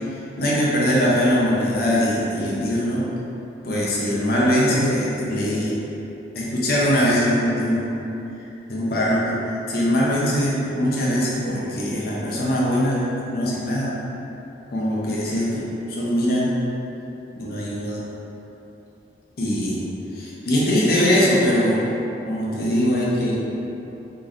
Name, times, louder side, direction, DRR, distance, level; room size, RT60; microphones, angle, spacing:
voice 1, 0.4-3.1 3.6-5.8 6.3-7.9 8.7-9.4 9.7-13.0 13.3-13.9 14.7-16.5 17.4-18.0 19.4-19.8 20.1-21.8 22.2-23.3, equal, 55° left, -6 dB, 0.6 m, -21 dB
3.8 x 3.2 x 2.6 m, 2.9 s
head